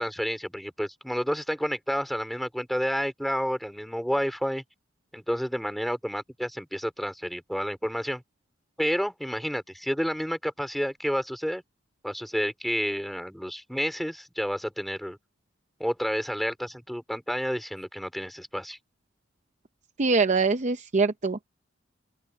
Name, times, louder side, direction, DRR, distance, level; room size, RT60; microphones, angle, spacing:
voice 1, 0.0-4.6 5.1-8.2 8.8-11.6 12.0-15.2 15.8-18.8, equal, ahead, 3.8 m, -30 dB
voice 2, 20.0-21.4, right 4 dB, 40° right, 0.7 m, -23 dB
open air
head